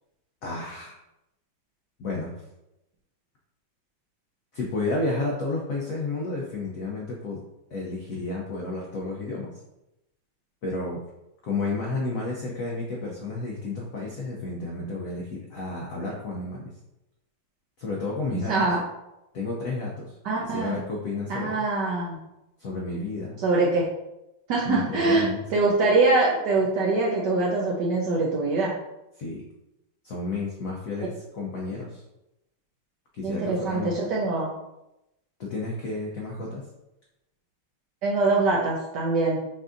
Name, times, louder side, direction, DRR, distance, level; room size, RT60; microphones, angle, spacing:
voice 1, 0.4-0.9 2.0-2.3 4.5-7.4 7.7-9.5 10.6-11.0 11.4-16.6 17.8-18.5 19.3-21.6 22.6-23.4 24.6-25.4 29.2-29.4 30.0-32.0 33.1-33.9 35.4-36.6, left 3 dB, 85° left, -3 dB, 0.7 m, -31 dB
voice 2, 18.3-18.8 20.2-20.8 21.3-22.2 23.4-23.9 24.5-28.7 33.2-34.5 38.0-39.4, right 3 dB, 70° right, -3 dB, 1.1 m, -23 dB
5.7 x 2.6 x 2.5 m, 0.91 s
omnidirectional pair, 2.2 m